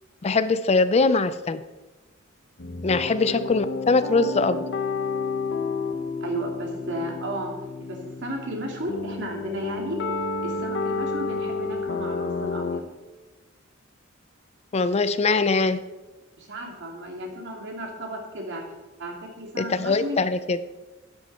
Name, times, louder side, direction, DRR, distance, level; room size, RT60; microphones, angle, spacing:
voice 1, 0.2-1.6 2.8-4.6 14.7-15.8 19.6-20.6, left 3 dB, 30° left, 13 dB, 0.4 m, -22 dB
sound 1, 2.6-12.8, left 4 dB, 60° left, 1.0 m, -31 dB
voice 2, 6.2-7.5 7.8-10.0 10.4-12.8 16.3-18.6 19.0-20.2, right 1 dB, 65° right, 1 dB, 2.8 m, -34 dB
11.5 x 11.0 x 4.3 m, 1.2 s
head